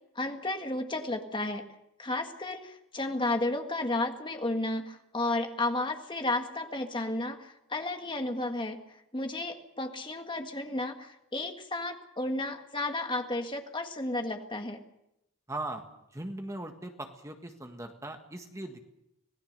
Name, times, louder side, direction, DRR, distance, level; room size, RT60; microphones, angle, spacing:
voice 1, 0.2-1.6 2.0-8.8 9.1-14.8, left 2 dB, 25° left, 5 dB, 1.8 m, -32 dB
voice 2, 15.5-15.8 16.1-18.9, right 2 dB, 15° right, 5 dB, 1.5 m, -39 dB
25.5 x 18.5 x 6.7 m, 0.84 s
head